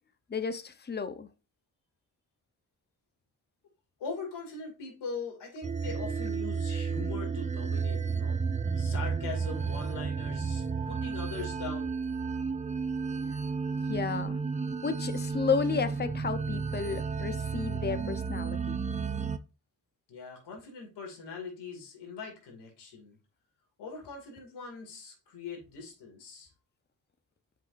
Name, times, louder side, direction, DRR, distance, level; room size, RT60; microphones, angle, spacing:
voice 1, 0.3-1.3 13.9-14.4 14.8-18.8, left 5 dB, 25° left, 0.8 m, -32 dB
voice 2, 4.0-8.4 8.8-12.0 20.1-23.2 23.8-26.5, left 4 dB, 80° left, 2.5 m, -41 dB
sound 1, 5.6-19.4, right 5 dB, 20° right, 0.5 m, -32 dB
7.6 x 5.1 x 2.6 m
supercardioid pair, 55°, 40 cm